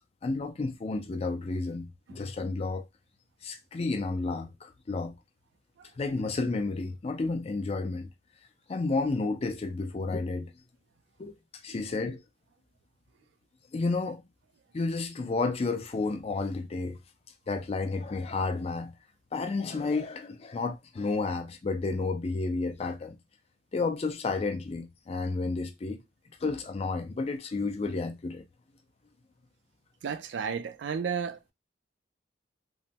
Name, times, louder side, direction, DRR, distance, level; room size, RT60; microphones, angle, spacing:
voice 1, 0.2-2.9 3.4-5.1 6.0-8.1 8.7-10.5 11.2-11.4 11.6-12.2 13.7-14.2 14.7-17.0 17.5-18.9 19.3-23.2 23.7-26.0 26.4-28.4, left 3 dB, 35° left, 0.4 m, -31 dB
voice 2, 30.0-31.5, right 6 dB, 65° right, 0.3 m, -33 dB
3.1 x 2.1 x 2.7 m
head